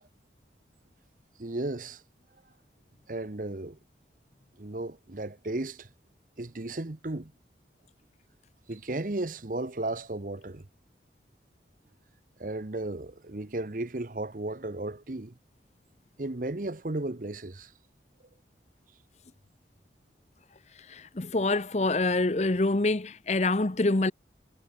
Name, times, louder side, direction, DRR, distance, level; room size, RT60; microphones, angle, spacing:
voice 1, 1.4-2.0 3.1-3.8 4.6-5.9 6.4-7.3 8.7-10.7 12.4-15.3 16.2-17.7, right 2 dB, 50° right, 1.0 m, -34 dB
voice 2, 20.9-24.1, left 2 dB, 40° left, 0.8 m, -26 dB
head